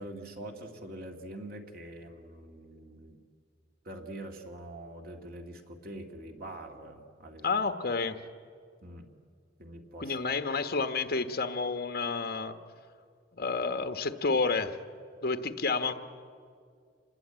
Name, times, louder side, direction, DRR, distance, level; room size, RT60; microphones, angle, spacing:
voice 1, 0.0-3.2 3.8-7.6 8.8-9.1 9.6-10.2, right 1 dB, 55° right, 3 dB, 2.3 m, -44 dB
voice 2, 7.4-8.2 10.0-12.5 13.3-14.8 15.2-15.9, left 4 dB, 55° left, 7 dB, 1.3 m, -30 dB
26.5 x 20.5 x 9.0 m, 2.2 s
head